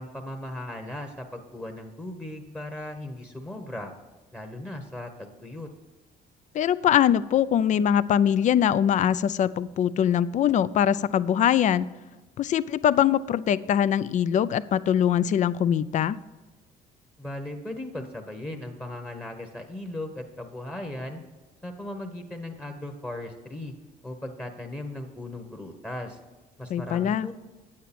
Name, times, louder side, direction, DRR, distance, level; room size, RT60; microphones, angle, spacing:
voice 1, 0.0-3.9 4.3-5.7 17.2-21.2 21.6-23.7 24.0-26.2 26.6-27.3, left 1 dB, 10° left, 3 dB, 1.0 m, -37 dB
voice 2, 6.5-11.9 12.4-16.2 26.7-27.3, left 9 dB, 45° left, 17 dB, 0.4 m, -22 dB
9.2 x 8.6 x 4.2 m, 1.2 s
cardioid pair, 110°, 17 cm